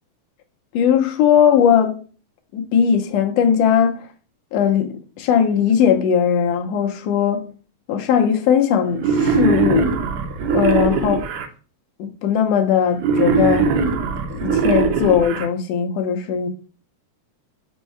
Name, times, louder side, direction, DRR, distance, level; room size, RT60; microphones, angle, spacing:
voice 1, 0.7-2.0 2.5-4.1 4.5-7.5 7.9-10.0 10.5-11.2 12.0-13.7 14.3-16.5, left 8 dB, 75° left, 1.6 m, -18 dB
Wild animals, 9.0-11.5 13.0-15.5, right 5 dB, 80° right, 1.7 m, -20 dB
5.3 x 2.1 x 4.5 m
omnidirectional pair, 3.5 m